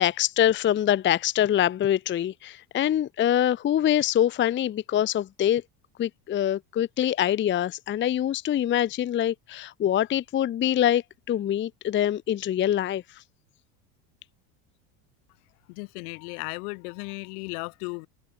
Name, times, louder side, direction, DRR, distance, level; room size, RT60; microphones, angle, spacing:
voice 1, 0.0-5.6 6.0-13.0, left 11 dB, 25° left, 0.6 m, -24 dB
voice 2, 15.7-18.1, left 31 dB, 75° left, 6.1 m, -35 dB
supercardioid pair, 110°, 44 cm